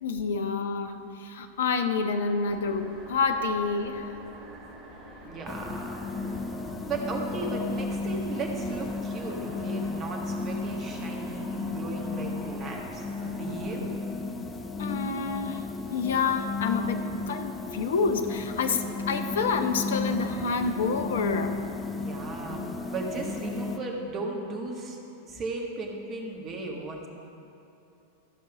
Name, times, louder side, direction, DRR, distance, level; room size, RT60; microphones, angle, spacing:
voice 1, 0.0-4.1 14.8-15.6 15.9-21.6, left 4 dB, 60° left, 7 dB, 0.7 m, -28 dB
sound 1, 2.5-13.9, right 1 dB, 10° right, 2.6 m, -47 dB
voice 2, 5.2-6.1 6.9-13.9 21.9-25.0 25.2-27.1, right 3 dB, 30° right, 0 dB, 1.6 m, -36 dB
sound 2, 5.5-23.8, left 3 dB, 15° left, 0.6 m, -34 dB
13.5 x 5.4 x 6.0 m, 2.8 s
figure-of-eight pair, 90°, 0 cm